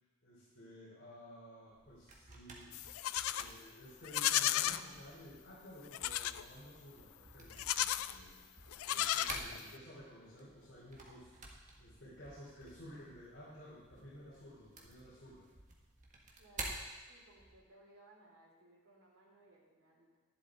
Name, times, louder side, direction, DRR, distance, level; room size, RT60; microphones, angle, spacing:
voice 1, 0.2-2.7 3.2-8.4 8.9-15.5, equal, 60° left, -8 dB, 3.2 m, -54 dB
sound 1, 1.7-17.6, right 2 dB, 35° right, 1.5 m, -51 dB
Livestock farm animals working animals, 2.7-3.5 4.0-4.8 5.9-6.4 7.5-8.2 8.7-9.8, left 13 dB, 90° left, 0.4 m, -34 dB
voice 2, 16.4-16.8 17.1-20.2, right 2 dB, 90° right, -3 dB, 3.2 m, -63 dB
11.0 x 11.0 x 3.8 m, 1.3 s
head